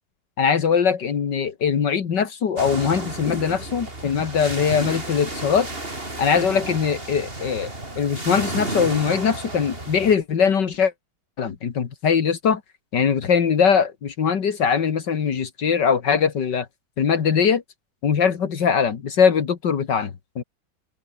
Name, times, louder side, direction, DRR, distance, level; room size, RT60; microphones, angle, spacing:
voice 1, 0.4-5.7 6.2-7.7 8.0-10.9 11.4-12.6 12.9-16.7 17.0-17.6 18.0-20.4, left 6 dB, 75° left, 2.4 m, -21 dB
sound 1, 2.6-10.2, right 2 dB, 30° right, 4.9 m, -32 dB
omnidirectional pair, 1.9 m